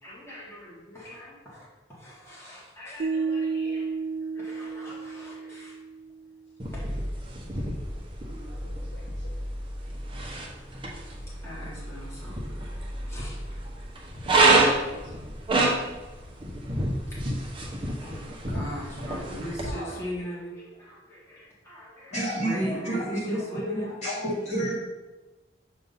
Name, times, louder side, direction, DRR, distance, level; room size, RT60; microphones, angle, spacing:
voice 1, 0.0-3.9 4.2-5.7 6.7-7.0 7.5-7.7 11.1-12.7 13.1-13.4 17.1-17.2 18.0-24.0, equal, 15° left, -7 dB, 1.5 m, -40 dB
sound 1, 3.0-6.2, right 4 dB, 60° right, 0.3 m, -31 dB
sound 2, 6.6-19.7, right 2 dB, 30° right, 0.9 m, -28 dB
voice 2, 8.2-9.4 15.0-15.2 18.5-18.7 19.1-19.2 19.6-20.0, right 1 dB, 75° left, -2 dB, 1.3 m, -46 dB
voice 3, 22.1-24.7, right 1 dB, 40° left, -6 dB, 2.1 m, -29 dB
6.8 x 2.6 x 5.4 m, 1.1 s
head